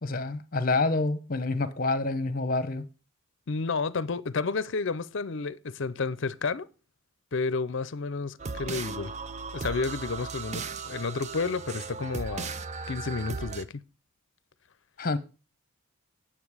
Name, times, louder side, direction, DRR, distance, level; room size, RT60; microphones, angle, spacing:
voice 1, 0.0-2.9 15.0-15.2, left 3 dB, 40° left, 0.9 m, -27 dB
voice 2, 3.5-6.7 7.3-9.1 9.5-12.5 12.9-13.8, left 4 dB, 60° left, 0.6 m, -31 dB
sound 1, 8.4-13.6, right 4 dB, 30° right, 0.5 m, -37 dB
9.3 x 7.4 x 4.8 m
head